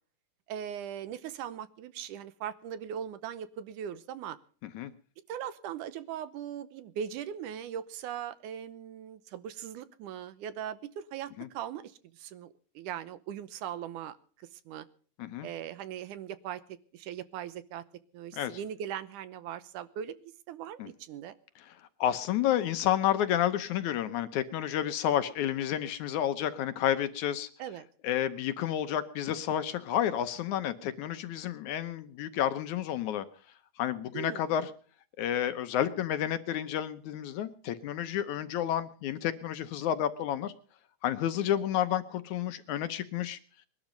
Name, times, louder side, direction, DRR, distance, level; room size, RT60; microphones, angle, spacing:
voice 1, 0.5-4.4 5.3-14.2 14.5-14.9 15.4-16.6 16.9-17.8 18.1-21.3 27.6-27.9 34.1-34.5, right 9 dB, 75° right, 14 dB, 2.3 m, -39 dB
voice 2, 22.0-27.5 28.0-33.3 33.8-34.7 35.2-40.5 41.0-43.4, left 11 dB, 70° left, 11 dB, 2.1 m, -30 dB
21.0 x 12.0 x 5.2 m, 0.43 s
omnidirectional pair, 3.8 m